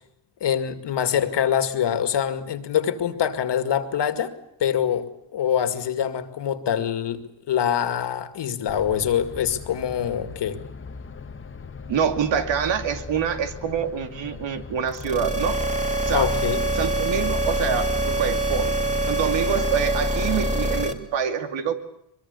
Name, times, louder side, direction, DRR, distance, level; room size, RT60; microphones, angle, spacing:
voice 1, 0.4-4.3 4.6-10.6 16.1-16.6, left 9 dB, 65° left, 10 dB, 2.3 m, -24 dB
sound 1, 8.7-19.1, left 4 dB, 25° left, 1.2 m, -38 dB
voice 2, 11.9-15.6 16.1-16.3 16.7-18.7 19.0-21.7, right 7 dB, 75° right, 7 dB, 2.5 m, -26 dB
sound 2, 14.9-20.9, right 2 dB, 15° right, 2.8 m, -24 dB
23.0 x 22.5 x 8.3 m, 0.78 s
cardioid pair, 105°, 45 cm